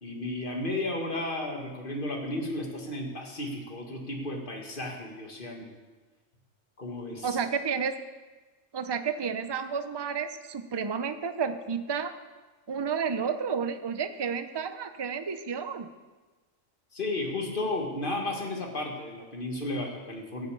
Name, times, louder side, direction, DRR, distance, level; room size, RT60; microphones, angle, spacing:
voice 1, 0.0-5.7 6.8-7.4 16.9-20.5, left 2 dB, 40° left, 1 dB, 2.1 m, -33 dB
voice 2, 7.2-7.9 8.7-12.1 12.7-15.9, right 6 dB, 30° right, 9 dB, 0.5 m, -31 dB
15.0 x 6.9 x 8.4 m, 1.3 s
omnidirectional pair, 1.4 m